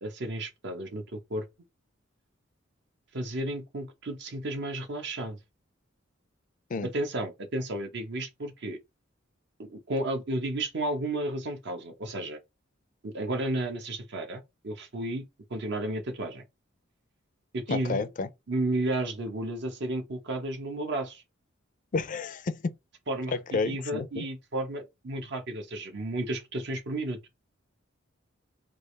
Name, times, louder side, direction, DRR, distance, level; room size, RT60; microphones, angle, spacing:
voice 1, 0.0-1.5 3.1-5.4 6.8-8.8 9.6-12.4 13.0-15.2 15.5-16.4 17.5-18.1 18.5-21.2 23.1-27.2, right 1 dB, 60° right, 0.8 m, -33 dB
voice 2, 17.7-18.3 21.9-22.7 23.5-24.3, left 4 dB, 40° left, 0.4 m, -30 dB
3.4 x 2.4 x 3.2 m
head